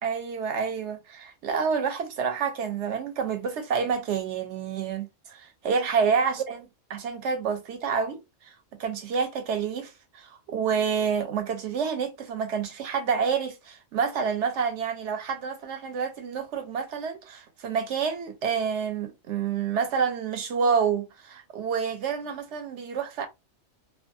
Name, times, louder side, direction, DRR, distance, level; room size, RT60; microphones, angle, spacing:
voice 1, 0.0-8.5 8.8-23.3, right 6 dB, 75° right, 0.9 m, -28 dB
2.5 x 2.3 x 2.6 m
omnidirectional pair, 1.3 m